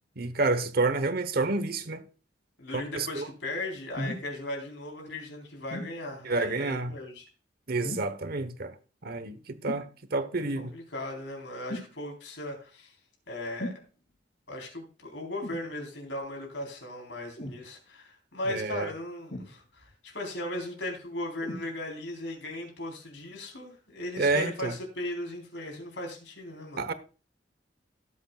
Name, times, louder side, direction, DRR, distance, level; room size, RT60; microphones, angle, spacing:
voice 1, 0.2-2.0 2.7-3.3 6.2-6.9 7.7-8.7 9.0-10.7 18.5-18.9 24.2-24.7 26.8-26.9, right 3 dB, 55° right, 1.0 m, -29 dB
voice 2, 2.6-7.3 10.6-12.9 13.3-13.8 14.5-26.9, left 1 dB, 90° left, 4.0 m, -37 dB
sound 1, 3.9-4.3 5.7-5.9 7.8-8.2 9.7-9.9 11.7-11.9 13.6-13.8 15.4-15.7 17.4-17.6 19.3-19.9 21.4-21.7 22.5-22.6, left 1 dB, 50° left, 4.9 m, -37 dB
17.5 x 8.0 x 2.4 m
head